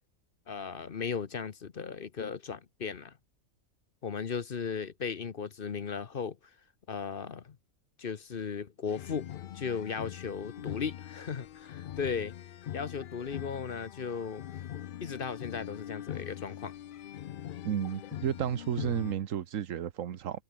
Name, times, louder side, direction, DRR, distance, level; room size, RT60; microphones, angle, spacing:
voice 1, 0.5-3.2 4.0-6.4 6.9-7.6 8.0-9.3 9.5-12.3 12.7-14.4 15.0-16.7, left 6 dB, 45° left, 1.0 m, -36 dB
sound 1, 8.9-19.1, left 11 dB, 75° left, 0.4 m, -42 dB
voice 2, 17.6-20.4, right 9 dB, 65° right, 1.3 m, -32 dB
omnidirectional pair, 1.5 m